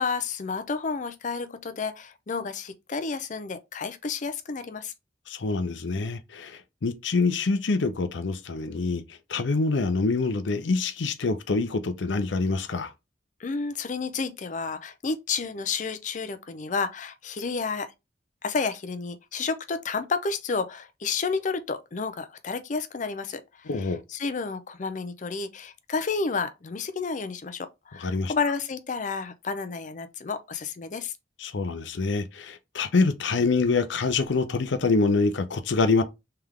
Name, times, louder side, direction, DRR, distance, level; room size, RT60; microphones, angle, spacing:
voice 1, 0.0-4.9 13.4-17.9 18.4-31.1, left 4 dB, 45° left, 0.5 m, -31 dB
voice 2, 5.3-12.9 23.7-24.0 28.0-28.3 31.4-36.0, left 3 dB, 90° left, 0.6 m, -26 dB
3.4 x 3.3 x 3.6 m
head